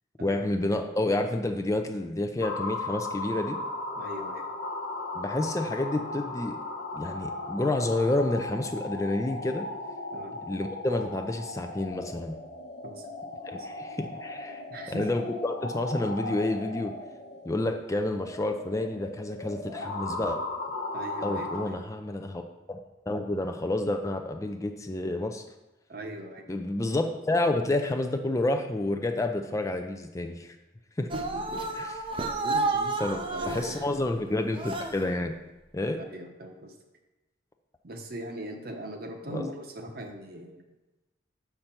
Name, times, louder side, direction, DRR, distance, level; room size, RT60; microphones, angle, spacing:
voice 1, 0.2-3.6 5.1-6.6 6.9-9.7 10.5-12.4 13.5-14.6 14.9-16.9 17.5-20.4 21.2-22.4 22.7-22.8 23.1-25.4 26.5-30.6 31.0-31.1 31.8-32.0 33.0-35.3 35.7-36.0 39.3-39.5, left 2 dB, 15° left, 5 dB, 0.4 m, -29 dB
sound 1, 2.4-21.7, left 2 dB, 60° left, 0.9 m, -37 dB
voice 2, 3.9-4.4 10.1-10.4 12.8-13.1 13.5-13.7 14.7-15.1 20.9-21.8 25.9-26.4 31.1-31.6 32.4-33.8 36.1-36.7 37.8-40.6, right 1 dB, 50° right, 4 dB, 0.9 m, -40 dB
sound 2, 31.1-33.8 34.5-35.1, right 3 dB, 30° right, 0.6 m, -31 dB
6.5 x 5.8 x 4.4 m, 1.0 s
head